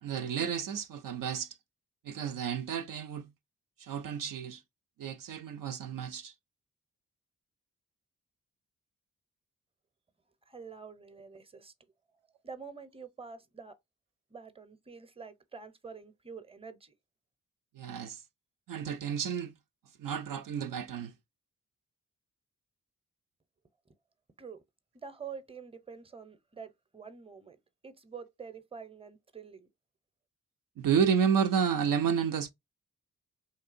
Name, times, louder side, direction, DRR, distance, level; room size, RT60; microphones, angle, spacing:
voice 1, 0.0-1.6 2.0-3.3 3.8-4.6 5.0-6.3 17.7-18.2 18.7-19.5 20.0-21.1 30.8-32.5, right 7 dB, 70° right, 0.5 m, -31 dB
voice 2, 10.5-11.7 12.4-13.8 14.3-16.9 24.4-24.6 24.9-27.6 27.8-29.7, right 5 dB, 15° right, 0.7 m, -47 dB
3.3 x 2.7 x 2.5 m
cardioid pair, 40°, 35 cm